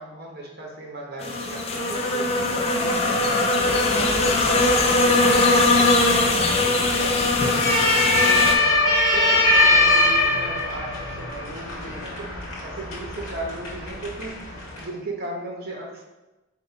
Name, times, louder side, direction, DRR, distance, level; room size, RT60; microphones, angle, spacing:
voice 1, 0.0-8.9 9.1-16.0, right 1 dB, 45° right, -1 dB, 0.9 m, -37 dB
sound 1, 1.2-8.5, left 2 dB, 30° left, 0.4 m, -20 dB
sound 2, 3.6-14.8, left 2 dB, 75° left, 1.4 m, -23 dB
4.2 x 2.9 x 4.3 m, 1.1 s
head